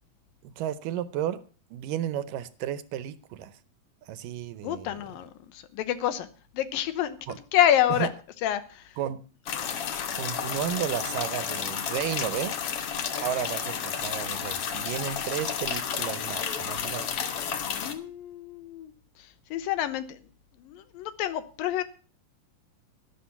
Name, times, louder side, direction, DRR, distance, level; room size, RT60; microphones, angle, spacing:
voice 1, 0.4-1.4 1.7-3.5 4.1-5.0 7.3-7.4 8.0-8.1 9.0-9.3 10.1-12.6 13.2-17.0, right 10 dB, 75° right, 14 dB, 2.2 m, -33 dB
voice 2, 4.6-6.3 6.5-8.1 8.4-8.9 9.6-10.0 17.7-18.9 19.5-20.2 20.6-21.8, left 11 dB, 80° left, 12 dB, 2.7 m, -28 dB
sound 1, 9.5-17.9, left 7 dB, 60° left, 1.5 m, -31 dB
11.5 x 11.5 x 5.8 m, 0.37 s
omnidirectional pair, 4.1 m